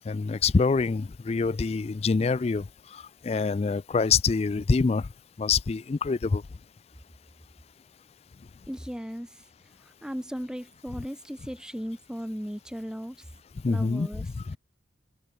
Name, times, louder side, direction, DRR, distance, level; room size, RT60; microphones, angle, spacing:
voice 1, 0.1-5.1 5.4-6.4 13.6-14.1 14.5-14.6, left 4 dB, 30° left, 0.3 m, -25 dB
voice 2, 8.7-9.4 9.8-13.3 13.7-14.3, equal, 5° right, 1.2 m, -37 dB
head